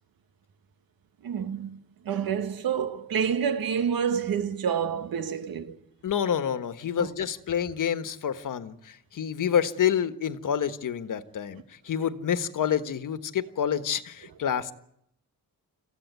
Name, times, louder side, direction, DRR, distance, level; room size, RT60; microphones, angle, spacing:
voice 1, 1.2-1.7 2.1-5.8 7.0-7.1, right 7 dB, 85° right, 1.8 m, -28 dB
voice 2, 6.0-14.7, left 8 dB, 65° left, 1.4 m, -28 dB
27.0 x 15.5 x 9.3 m
wide cardioid pair, 155°, 34 cm